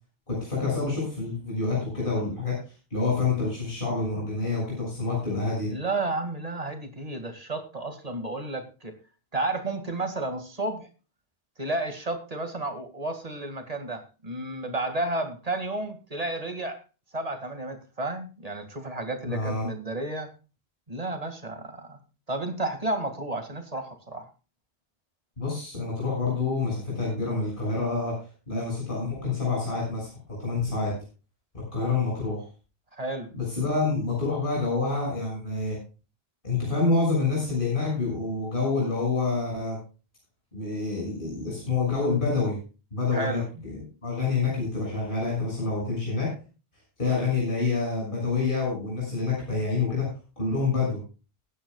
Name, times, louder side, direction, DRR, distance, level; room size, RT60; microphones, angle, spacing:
voice 1, 0.3-2.6 2.9-5.7 19.3-19.7 25.4-28.2 28.5-30.9 31.5-32.5 33.3-35.8 36.4-39.8 40.5-42.6 42.9-46.3 47.0-50.1 50.4-51.0, left 3 dB, 55° left, -4 dB, 6.9 m, -27 dB
voice 2, 5.7-8.9 9.3-10.9 11.6-16.8 17.1-20.3 20.9-22.0 22.3-24.3 32.9-33.3 43.1-43.4, right 2 dB, 35° right, 7 dB, 2.3 m, -32 dB
21.5 x 10.0 x 2.3 m, 0.33 s
omnidirectional pair, 1.1 m